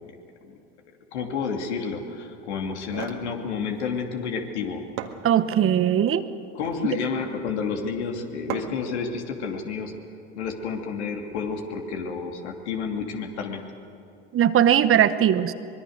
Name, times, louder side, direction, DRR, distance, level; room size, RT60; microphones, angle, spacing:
voice 1, 1.1-4.8 6.5-9.9 10.3-13.6, left 5 dB, 75° left, 3 dB, 2.8 m, -30 dB
sound 1, 2.7-3.3 4.5-4.6 5.0-5.8 6.4-6.9 8.5-8.9, right 11 dB, 65° right, 1.8 m, -36 dB
voice 2, 5.2-6.2 14.3-15.5, right 10 dB, 40° right, 13 dB, 1.1 m, -19 dB
24.0 x 22.0 x 6.5 m, 2.6 s
hypercardioid pair, 70°, 34 cm